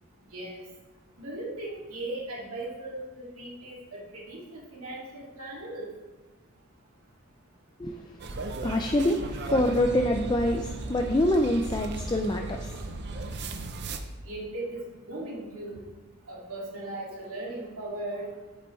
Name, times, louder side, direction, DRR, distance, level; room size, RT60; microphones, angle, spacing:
voice 1, 0.3-0.6 1.2-5.9 14.3-15.8 16.3-18.3, right 2 dB, 75° right, -4 dB, 2.4 m, -38 dB
voice 2, 7.8-12.8 13.5-13.6, left 1 dB, 20° left, 3 dB, 0.4 m, -26 dB
sound 1, 8.2-14.0, right 2 dB, 50° right, 0.6 m, -36 dB
9.0 x 8.1 x 3.2 m, 1.2 s
head